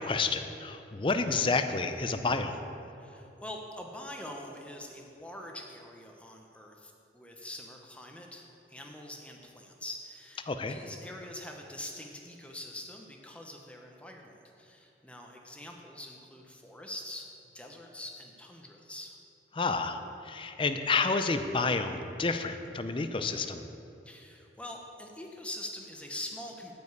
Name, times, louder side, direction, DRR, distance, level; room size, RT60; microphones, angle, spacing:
voice 1, 0.0-2.6 10.4-10.8 19.5-23.6, left 4 dB, 30° left, 8 dB, 0.5 m, -30 dB
voice 2, 3.0-19.2 24.0-26.7, left 1 dB, 5° left, 1 dB, 0.8 m, -44 dB
9.4 x 5.3 x 8.0 m, 2.7 s
head